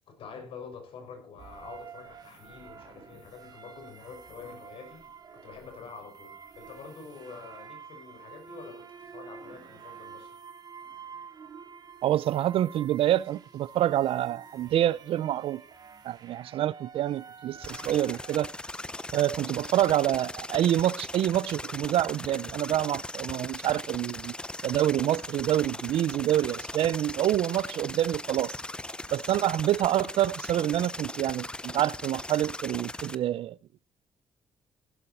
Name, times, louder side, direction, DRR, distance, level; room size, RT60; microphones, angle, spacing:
voice 1, 0.1-10.4, left 5 dB, 70° left, 5.5 m, -46 dB
sound 1, 1.4-18.5, right 6 dB, 45° right, 2.5 m, -48 dB
voice 2, 12.0-15.6 16.0-18.5 19.1-24.3 24.6-28.6 29.1-33.6, right 12 dB, 75° right, 0.6 m, -27 dB
sound 2, 17.6-33.1, left 2 dB, 10° left, 0.7 m, -39 dB
16.0 x 12.0 x 4.3 m
cardioid pair, 115°, 9 cm